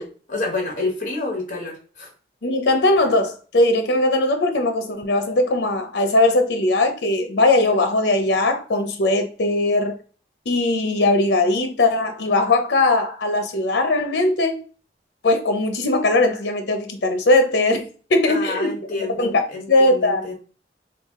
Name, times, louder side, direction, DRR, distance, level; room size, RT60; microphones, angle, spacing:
voice 1, 0.0-2.1 18.3-20.3, left 3 dB, 45° left, 1 dB, 1.1 m, -29 dB
voice 2, 2.4-10.0 10.5-14.6 15.2-17.8 18.1-18.7 19.2-19.4 19.7-20.3, left 2 dB, 85° left, 6 dB, 0.6 m, -19 dB
3.3 x 2.3 x 3.6 m, 0.39 s
head